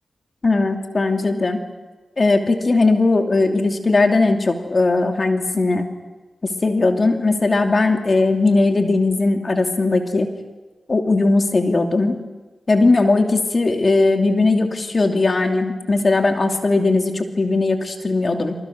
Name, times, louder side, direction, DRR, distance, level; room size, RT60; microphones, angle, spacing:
voice 1, 0.4-1.6 2.2-5.9 6.4-10.3 10.9-12.2 12.7-18.5, left 3 dB, 55° left, 4 dB, 2.7 m, -18 dB
28.0 x 26.5 x 6.3 m, 1.2 s
cardioid pair, 40°, 0 cm